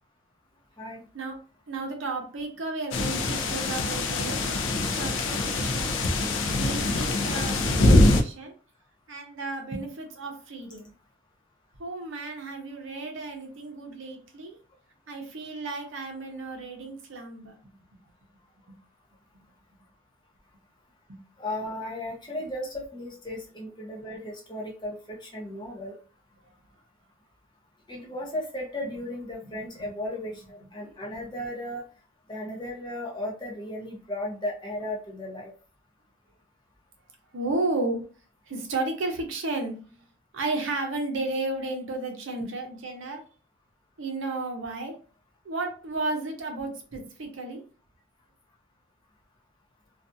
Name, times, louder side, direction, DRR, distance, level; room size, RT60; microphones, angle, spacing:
voice 1, 1.7-4.6 4.9-8.5 9.1-10.9 11.8-14.6 15.1-17.5 21.1-21.2 29.4-29.9 37.3-38.0 38.5-39.9 40.3-43.2 44.0-44.9 45.4-47.6, right 2 dB, 65° right, 3 dB, 0.6 m, -33 dB
sound 1, 2.9-8.2, left 2 dB, 65° left, 0.4 m, -23 dB
voice 2, 21.4-26.0 27.9-31.8 32.3-35.5, left 1 dB, 20° left, -3 dB, 0.6 m, -35 dB
2.5 x 2.3 x 2.5 m, 0.38 s
head